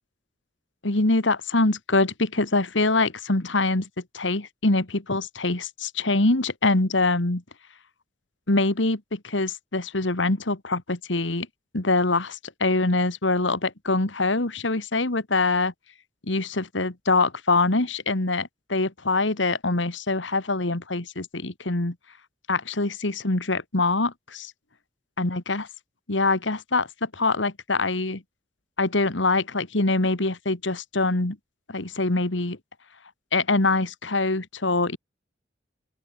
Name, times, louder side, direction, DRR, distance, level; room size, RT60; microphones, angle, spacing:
voice 1, 0.8-3.9 4.1-7.4 8.5-11.5 11.7-15.7 16.3-22.0 22.5-24.5 25.2-25.7 26.1-28.2 28.8-31.4 31.7-32.6 33.3-35.0, left 2 dB, 75° left, 2.2 m, -24 dB
open air
head